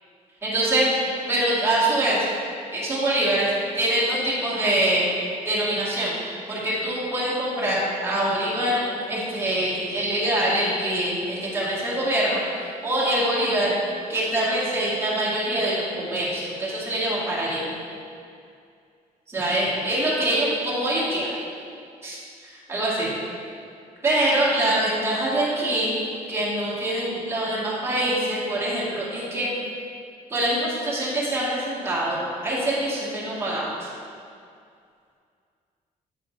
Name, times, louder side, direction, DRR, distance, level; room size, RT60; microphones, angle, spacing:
voice 1, 0.4-1.0 1.3-2.3 2.7-5.1 5.5-6.1 6.5-13.8 14.1-17.6 19.3-21.3 22.0-23.1 24.0-26.0 26.3-29.5 30.3-33.9, right 1 dB, 20° right, -8 dB, 2.0 m, -24 dB
9.0 x 4.2 x 5.1 m, 2.4 s
cardioid pair, 175°, 14 cm